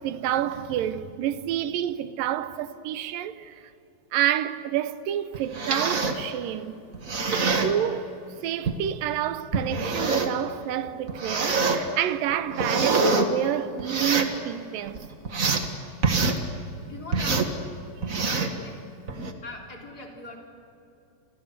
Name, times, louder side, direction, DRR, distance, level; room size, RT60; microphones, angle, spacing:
voice 1, 0.0-3.7 4.1-6.8 7.3-8.2 8.4-15.0 18.1-18.6, right 11 dB, 75° right, 2.5 m, -29 dB
sound 1, 5.3-6.2 6.9-7.7 8.6-8.8 9.5-10.4 11.1-11.8 12.3-13.3 13.8-14.3 14.9-15.7 16.0-16.4 17.1-17.5 18.0-18.6 19.1-19.3, right 4 dB, 40° right, 1.2 m, -25 dB
voice 2, 16.9-17.6 18.6-18.8 19.4-20.4, left 2 dB, 25° left, 3.9 m, -41 dB
29.5 x 27.0 x 6.8 m
omnidirectional pair, 4.2 m